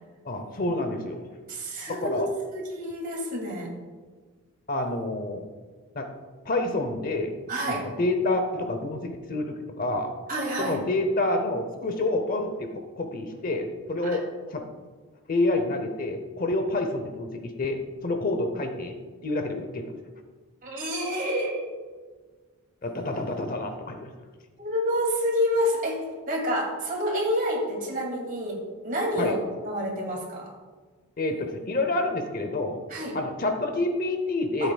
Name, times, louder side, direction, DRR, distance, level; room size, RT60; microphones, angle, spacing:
voice 1, 0.2-1.3 1.9-2.3 4.7-5.5 5.9-6.1 6.5-7.3 7.7-10.1 10.6-14.2 14.5-14.6 15.3-19.0 19.2-19.9 22.8-24.1 29.2-29.4 31.2-32.8 33.1-34.7, left 2 dB, 40° left, 6 dB, 0.7 m, -28 dB
voice 2, 1.5-2.2 2.5-3.7 7.5-7.9 8.6-8.7 10.3-10.8 20.6-21.6 24.6-29.4 29.6-30.5 32.9-33.2 34.6-34.7, equal, 40° right, -1 dB, 2.4 m, -28 dB
13.5 x 8.1 x 2.3 m, 1.4 s
head